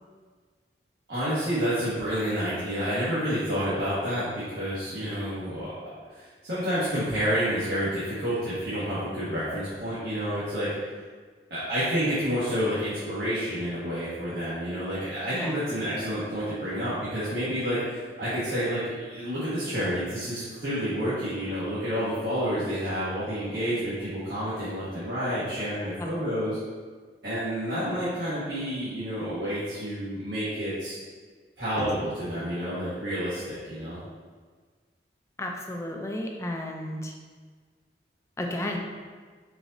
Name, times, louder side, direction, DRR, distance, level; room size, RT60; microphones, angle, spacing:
voice 1, 1.1-5.7 6.1-10.7 11.5-26.6 27.2-31.0 31.6-34.0, equal, 70° right, -12 dB, 1.3 m, -29 dB
voice 2, 35.4-37.1 38.4-38.8, left 1 dB, 15° left, 1 dB, 0.4 m, -33 dB
4.7 x 3.9 x 2.6 m, 1.5 s
head